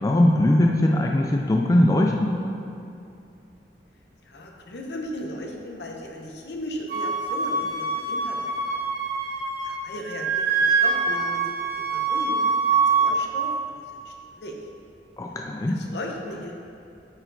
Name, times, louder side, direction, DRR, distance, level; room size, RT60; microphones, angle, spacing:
voice 1, 0.0-2.4 15.2-15.8, left 1 dB, 20° left, 1 dB, 0.3 m, -20 dB
voice 2, 4.3-8.5 9.6-11.7 11.9-12.4 12.9-13.8 14.0-14.5 15.7-16.5, left 1 dB, 65° left, 1 dB, 0.8 m, -36 dB
Wind instrument woodwind instrument, 6.9-9.8 10.1-13.1, right 4 dB, 60° right, 1.0 m, -24 dB
8.7 x 4.5 x 3.9 m, 2.6 s
head